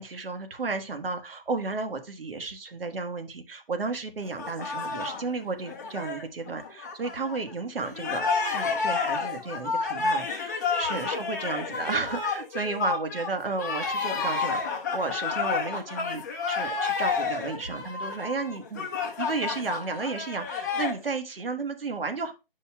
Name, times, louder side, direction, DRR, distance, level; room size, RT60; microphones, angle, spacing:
voice 1, 0.0-18.9 19.2-22.3, right 4 dB, 75° right, 7 dB, 1.4 m, -33 dB
sound 1, 4.2-7.5 7.8-21.0, left 5 dB, 20° left, 0.9 m, -30 dB
10.0 x 5.4 x 2.3 m, 0.28 s
hypercardioid pair, 165°, 29 cm